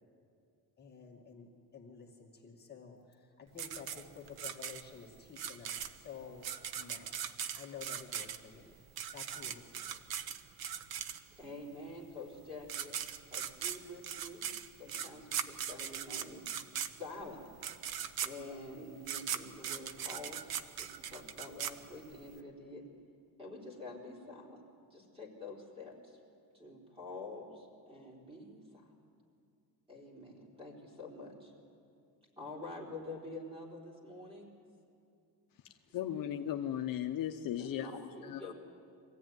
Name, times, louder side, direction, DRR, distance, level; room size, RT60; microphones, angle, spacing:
voice 1, 0.8-6.5 6.8-7.3 7.5-8.7 9.1-10.0, left 6 dB, 25° left, -1 dB, 2.0 m, -51 dB
sound 1, 3.6-11.5 12.3-12.4 12.6-22.3, right 9 dB, 65° right, 1.0 m, -40 dB
voice 2, 11.4-13.0 13.3-14.5 14.8-16.4 16.8-17.4 18.2-20.5 20.8-22.9 23.4-24.6 24.9-26.2 26.5-28.9 29.9-31.5 32.4-34.5 35.9-36.0 37.6-38.5, left 2 dB, 15° right, -2 dB, 4.0 m, -47 dB
voice 3, 35.9-38.5, left 10 dB, 55° left, 5 dB, 0.9 m, -37 dB
24.0 x 15.5 x 9.5 m, 2.4 s
cardioid pair, 170°, 39 cm